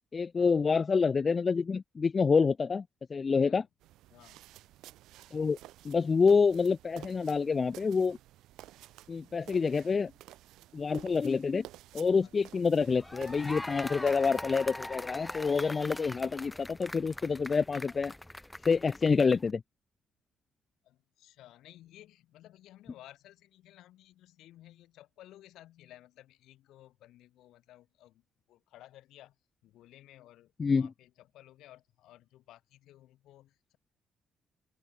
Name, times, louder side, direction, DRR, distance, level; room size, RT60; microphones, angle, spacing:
voice 1, 0.1-2.8 3.1-3.6 5.3-5.6 5.8-8.2 9.1-10.1 10.7-11.6 11.9-18.1 18.7-19.6 30.6-30.9, left 5 dB, 35° left, 0.3 m, -27 dB
voice 2, 3.3-3.7 4.1-4.4 12.2-12.5 20.8-29.4 29.6-33.8, left 14 dB, 85° left, 5.4 m, -56 dB
sound 1, 3.8-14.4, right 15 dB, 90° right, 3.2 m, -53 dB
sound 2, 12.8-19.5, left 1 dB, 10° left, 1.1 m, -42 dB
cardioid pair, 90°, 0 cm